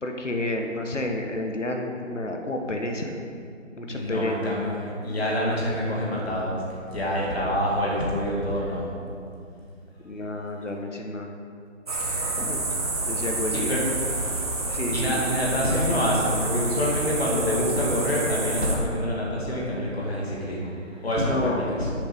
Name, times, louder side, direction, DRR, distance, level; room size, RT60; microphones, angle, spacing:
voice 1, 0.0-3.1 3.8-4.5 10.0-11.3 11.9-12.0 12.4-12.6 13.1-13.8 14.7-15.2 21.2-21.6, left 2 dB, 65° left, 2 dB, 1.2 m, -30 dB
voice 2, 3.9-6.6 6.9-8.9 13.5-13.8 14.9-20.8 21.0-21.9, equal, 50° left, -4 dB, 2.3 m, -26 dB
sound 1, 11.9-18.8, right 2 dB, 30° right, 1.1 m, -29 dB
9.7 x 7.0 x 5.3 m, 2.4 s
figure-of-eight pair, 155°, 39 cm